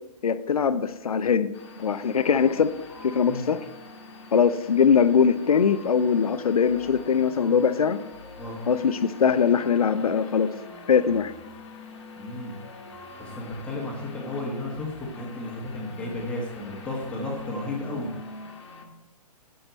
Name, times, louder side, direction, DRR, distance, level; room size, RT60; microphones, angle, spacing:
voice 1, 0.2-1.5 1.8-2.7 3.0-3.6 4.3-8.0 8.7-10.6 10.9-11.3, left 6 dB, 65° left, 13 dB, 0.6 m, -21 dB
sound 1, 1.5-18.8, left 3 dB, 45° left, 1.4 m, -44 dB
voice 2, 12.2-12.5 13.2-18.1, left 2 dB, 5° left, -2 dB, 1.5 m, -33 dB
9.0 x 7.9 x 4.3 m, 1.0 s
figure-of-eight pair, 125°, 20 cm